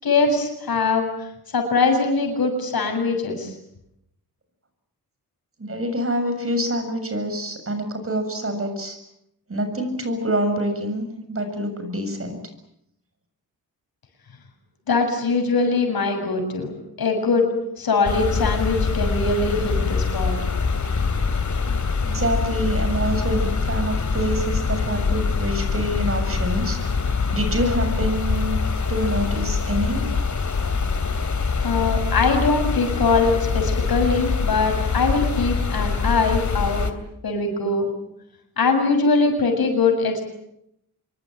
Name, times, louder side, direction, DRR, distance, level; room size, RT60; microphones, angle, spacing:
voice 1, 0.0-1.1 1.5-3.5 14.9-16.7 17.0-17.5 17.8-20.3 31.6-36.8 37.2-37.9 38.6-40.2, left 4 dB, 70° left, 4 dB, 7.3 m, -22 dB
voice 2, 5.6-9.0 9.5-12.4 22.0-26.8 27.1-28.6 28.9-30.1, equal, 35° right, 7 dB, 7.4 m, -26 dB
sound 1, 18.1-36.9, left 4 dB, 50° left, 3.3 m, -24 dB
26.0 x 23.5 x 9.3 m, 0.79 s
wide cardioid pair, 105°, 38 cm